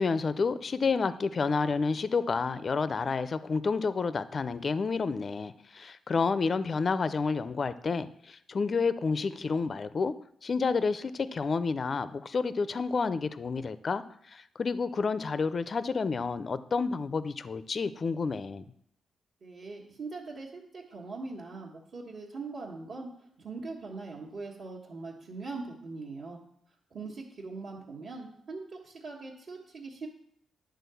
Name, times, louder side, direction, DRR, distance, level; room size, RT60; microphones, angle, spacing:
voice 1, 0.0-10.1 10.4-18.6, left 4 dB, 40° left, 14 dB, 0.4 m, -30 dB
voice 2, 19.4-23.1 23.4-26.4 26.9-30.1, right 3 dB, 55° right, -5 dB, 1.4 m, -41 dB
10.5 x 3.8 x 6.9 m, 0.69 s
cardioid pair, 120°, 0 cm